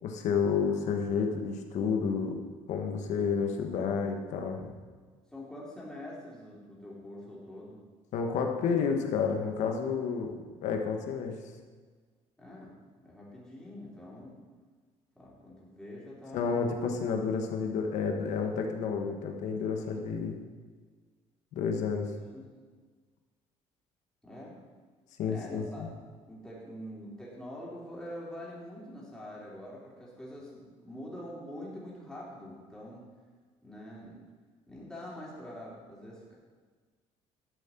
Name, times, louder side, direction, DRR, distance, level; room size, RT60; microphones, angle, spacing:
voice 1, 0.0-2.4 2.7-4.7 8.1-11.4 16.3-20.4 21.5-22.1 25.2-25.9, left 5 dB, 75° left, 3 dB, 1.4 m, -30 dB
voice 2, 5.3-7.8 12.4-12.7 13.0-14.4 15.1-16.7 19.8-20.1 22.3-22.5 24.2-24.6 25.2-25.9 26.3-33.1 33.6-34.2 34.7-36.3, left 1 dB, 5° left, -6 dB, 3.4 m, -45 dB
12.0 x 7.6 x 4.5 m, 1.5 s
cardioid pair, 125°, 12 cm